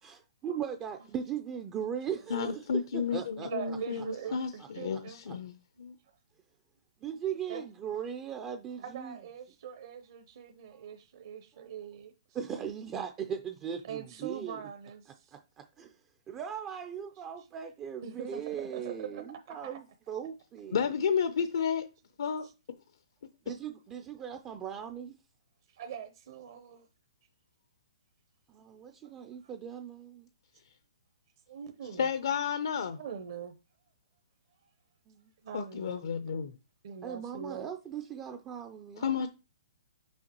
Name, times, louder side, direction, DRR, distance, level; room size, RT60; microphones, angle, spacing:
voice 1, 0.0-3.8 4.9-5.0 5.3-5.4 7.0-9.2 12.3-14.6 15.3-15.9 16.3-20.9 23.5-25.1 28.5-30.3 35.1-35.3 37.0-39.3, right 8 dB, 15° right, 0.3 m, -39 dB
voice 2, 2.3-4.5 4.7-6.0 20.7-21.9 22.2-22.5 32.0-33.0 35.5-36.5 39.0-39.3, left 6 dB, 65° left, 0.5 m, -31 dB
voice 3, 3.5-5.2 7.5-7.6 8.8-12.1 13.8-15.3 17.4-17.5 18.0-19.8 22.4-22.5 25.7-26.9 29.0-29.1 29.4-29.5 31.5-32.1 32.9-33.6 35.4-36.0 36.8-37.7, right 8 dB, 50° right, 0.7 m, -42 dB
6.3 x 5.2 x 2.9 m
hypercardioid pair, 165°, 3 cm